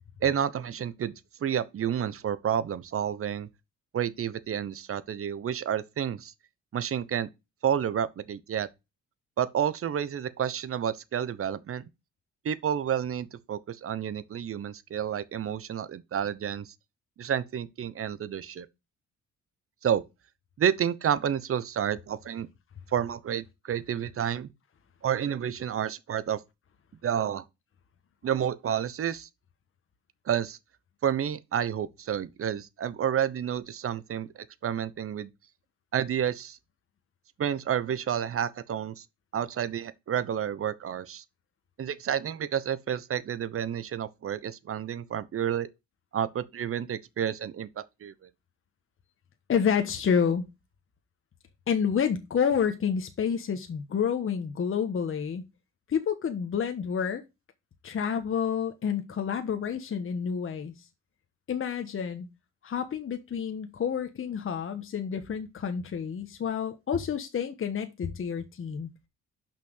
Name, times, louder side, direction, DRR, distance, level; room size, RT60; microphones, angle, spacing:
voice 1, 0.2-1.1 1.4-3.5 3.9-6.3 6.7-7.3 7.6-8.7 9.4-11.8 12.4-16.7 17.2-18.7 19.8-20.0 20.6-22.5 22.9-24.5 25.0-26.4 27.0-27.4 28.2-29.3 30.3-30.6 31.0-35.3 35.9-36.6 37.4-39.0 39.3-41.2 41.8-45.7 46.1-48.1, right 9 dB, 50° right, 0.9 m, -30 dB
voice 2, 49.5-50.4 51.7-55.4 55.9-57.2 57.8-60.7 61.5-62.3 62.6-68.9, left 7 dB, 45° left, 1.2 m, -29 dB
5.9 x 5.8 x 6.5 m
cardioid pair, 90°, 30 cm